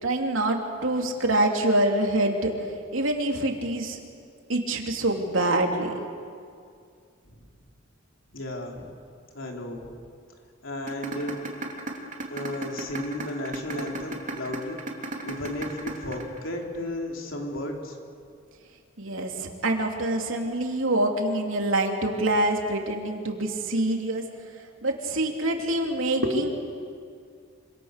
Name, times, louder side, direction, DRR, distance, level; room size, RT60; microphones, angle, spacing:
voice 1, 0.0-4.0 4.5-5.9 19.0-24.2 24.8-26.5, right 1 dB, 90° right, 2 dB, 3.2 m, -25 dB
voice 2, 8.3-8.9 9.3-9.9 10.6-11.4 12.3-18.0, left 1 dB, 75° left, 1 dB, 3.9 m, -34 dB
sound 1, 10.9-16.9, right 2 dB, 40° right, 3.2 m, -34 dB
27.0 x 26.5 x 6.7 m, 2.3 s
head